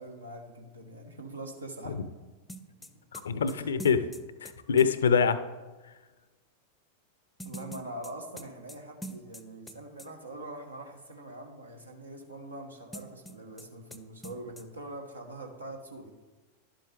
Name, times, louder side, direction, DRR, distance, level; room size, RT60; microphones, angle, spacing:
voice 1, 0.0-2.0 2.8-2.9 3.5-3.7 7.4-16.1, right 1 dB, 80° right, 2 dB, 1.3 m, -43 dB
sound 1, 2.5-4.9 7.4-9.7 10.0-10.1 12.9-13.7 13.9-14.0 14.2-14.6, right 1 dB, 5° left, 0.6 m, -44 dB
voice 2, 3.1-4.1 4.4-5.4, left 6 dB, 65° left, 13 dB, 0.5 m, -25 dB
11.5 x 7.6 x 3.4 m, 1.2 s
figure-of-eight pair, 90°, 0 cm